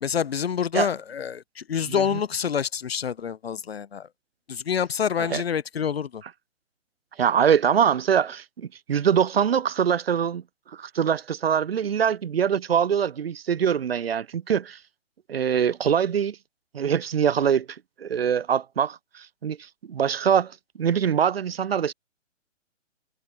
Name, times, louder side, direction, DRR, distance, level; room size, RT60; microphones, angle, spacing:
voice 1, 0.0-4.1 4.5-6.2, left 7 dB, 50° left, 1.7 m, -27 dB
voice 2, 7.2-10.4 10.7-14.8 15.3-16.4 16.7-17.7 18.0-19.6 19.9-20.5 20.8-21.9, right 8 dB, 50° right, 2.2 m, -23 dB
figure-of-eight pair, 135°, 38 cm